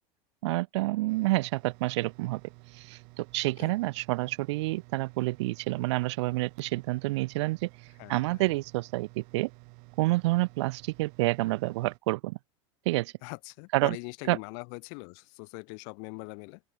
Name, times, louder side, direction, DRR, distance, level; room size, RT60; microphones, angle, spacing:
voice 1, 0.4-2.4 2.8-7.7 8.1-9.5 10.0-12.4 12.9-13.1 13.7-14.0 14.3-14.4, right 20 dB, 80° right, 0.5 m, -28 dB
sound 1, 1.1-12.0, right 32 dB, 65° right, 4.9 m, -53 dB
voice 2, 8.0-8.6 13.2-16.6, left 40 dB or more, 65° left, 2.8 m, -42 dB
open air
supercardioid pair, 115°, 14 cm